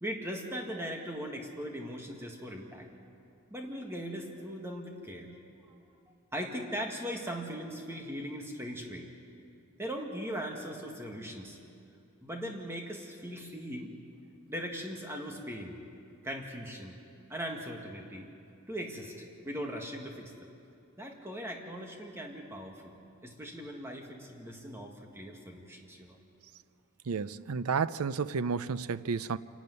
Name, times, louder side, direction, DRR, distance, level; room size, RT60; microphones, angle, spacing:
voice 1, 0.0-2.9 3.5-5.3 5.7-6.0 6.3-9.1 9.8-11.6 12.2-13.9 14.5-15.8 16.2-17.0 17.3-18.3 18.7-20.5 21.0-23.0 23.2-26.2, equal, 10° right, 1 dB, 1.8 m, -39 dB
voice 2, 27.1-29.4, right 5 dB, 85° right, 15 dB, 0.5 m, -31 dB
26.5 x 12.0 x 9.5 m, 2.5 s
head